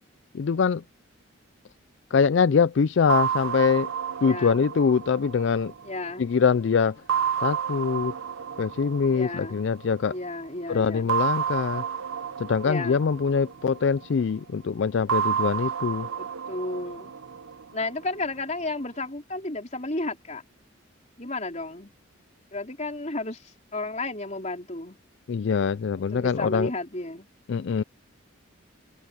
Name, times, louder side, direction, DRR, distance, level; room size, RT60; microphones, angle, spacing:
voice 1, 0.3-0.8 2.1-3.9 4.2-5.7 6.2-7.0 7.4-8.1 8.6-10.1 10.7-11.8 12.4-16.1 25.3-26.7 27.5-27.8, left 5 dB, 60° left, 0.4 m, -23 dB
sound 1, 3.1-6.4 7.1-10.0 11.1-14.2 15.1-18.2, right 8 dB, 80° right, 0.7 m, -30 dB
voice 2, 4.2-4.6 5.8-6.3 9.1-9.6 10.1-11.1 12.6-13.0 16.2-17.1 17.7-20.4 21.2-21.9 22.5-25.0 26.1-27.3, left 2 dB, 35° left, 4.2 m, -33 dB
open air
head